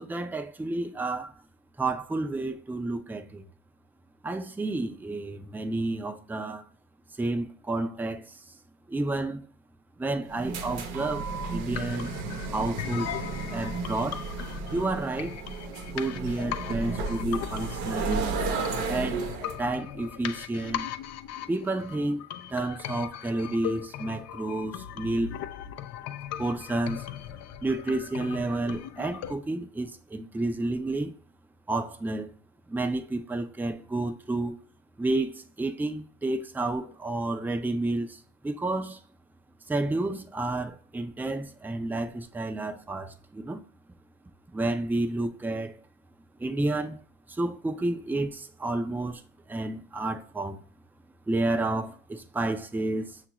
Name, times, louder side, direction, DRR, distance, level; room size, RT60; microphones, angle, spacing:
voice 1, 0.0-1.3 1.8-3.4 4.2-6.6 7.2-8.5 8.9-9.5 10.0-12.2 12.5-13.1 13.5-14.2 14.7-15.4 15.9-18.3 18.9-19.2 19.6-20.9 21.5-25.4 26.4-27.0 27.6-31.1 31.7-32.3 32.7-34.6 35.0-39.0 39.7-43.6 44.5-45.8 46.4-47.0 47.3-50.6 51.3-53.2, right 2 dB, 5° right, 0.5 m, -30 dB
sound 1, 10.3-19.6, right 4 dB, 85° right, 0.8 m, -33 dB
sound 2, 11.3-29.3, left 10 dB, 55° left, 0.5 m, -39 dB
5.8 x 2.5 x 2.9 m
supercardioid pair, 85°, 30 cm